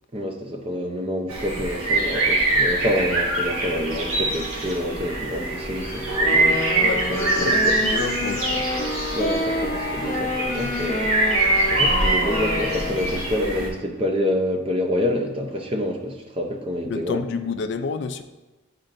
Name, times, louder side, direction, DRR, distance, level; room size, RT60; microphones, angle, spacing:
voice 1, 0.1-6.8 7.1-7.8 9.1-11.4 11.7-17.2, left 1 dB, 25° right, 3 dB, 0.6 m, -27 dB
sound 1, 1.3-13.7, right 2 dB, 90° right, 1.5 m, -24 dB
Wind instrument woodwind instrument, 6.2-13.2, left 2 dB, 40° left, 0.8 m, -28 dB
voice 2, 7.4-8.7 16.9-18.2, left 5 dB, 55° left, 9 dB, 0.3 m, -29 dB
10.5 x 4.3 x 2.6 m, 1.1 s
head